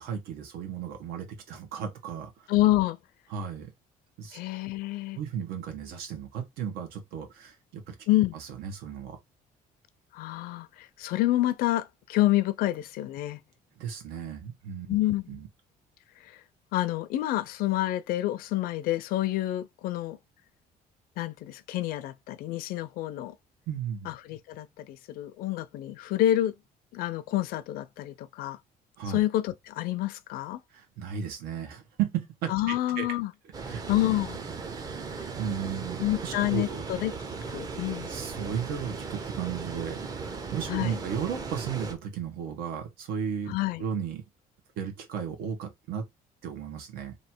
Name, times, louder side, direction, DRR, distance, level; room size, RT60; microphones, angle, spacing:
voice 1, 0.0-2.3 3.3-3.7 4.2-4.4 5.1-7.9 8.3-9.2 13.8-14.9 15.3-15.5 23.7-24.1 29.0-29.2 30.7-33.1 33.6-33.8 35.4-36.8 38.1-43.5 43.8-44.2 44.8-46.1 46.4-47.1, right 8 dB, 85° right, 1.3 m, -35 dB
voice 2, 2.5-3.0 4.3-5.2 8.1-8.3 10.1-13.4 14.9-15.4 16.2-16.4 16.7-20.2 21.2-23.3 24.1-26.5 26.9-28.6 29.0-30.6 32.5-33.3 33.9-34.4 36.0-37.1 37.5-38.1 40.7-41.0 43.5-43.8, left 14 dB, 75° left, 0.5 m, -28 dB
Water, 33.5-41.9, right 4 dB, 25° right, 0.6 m, -37 dB
3.2 x 2.7 x 4.3 m
cardioid pair, 165°, 15 cm